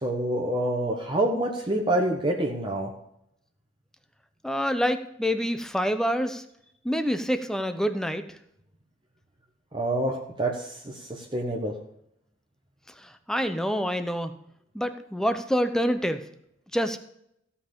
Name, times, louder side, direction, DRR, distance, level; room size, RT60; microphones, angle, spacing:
voice 1, 0.0-2.9 9.7-10.7 11.3-11.7, right 1 dB, 25° right, 0 dB, 1.4 m, -26 dB
voice 2, 4.4-6.4 6.8-8.2 13.3-14.3 14.7-16.2 16.7-17.0, equal, 5° left, 9 dB, 0.8 m, -26 dB
15.5 x 5.7 x 6.8 m, 0.75 s
head